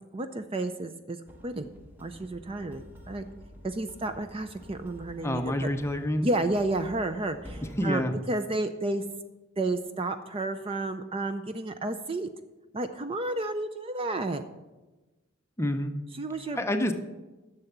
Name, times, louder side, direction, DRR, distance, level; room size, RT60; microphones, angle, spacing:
voice 1, 0.1-1.2 1.4-1.7 2.0-3.3 3.6-5.7 6.2-9.0 9.6-12.3 12.7-14.4 16.1-16.6, right 2 dB, 25° right, 9 dB, 0.5 m, -31 dB
sound 1, 1.3-7.9, equal, 10° right, 1.0 m, -48 dB
voice 2, 5.2-6.3 7.8-8.1 15.6-15.9 16.6-16.9, left 1 dB, 15° left, 6 dB, 0.7 m, -27 dB
10.5 x 6.8 x 7.2 m, 1.1 s
head